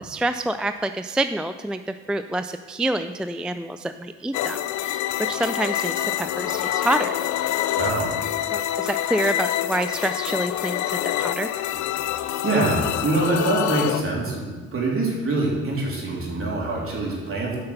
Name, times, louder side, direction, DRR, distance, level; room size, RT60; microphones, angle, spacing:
voice 1, 0.1-7.2 8.5-11.5, right 1 dB, 5° right, 9 dB, 0.3 m, -27 dB
sound 1, 4.3-14.0, left 12 dB, 75° left, 0.5 m, -26 dB
voice 2, 7.8-8.1 12.4-17.6, right 2 dB, 45° right, -3 dB, 3.5 m, -24 dB
9.6 x 5.7 x 6.7 m, 1.4 s
supercardioid pair, 70°, 30 cm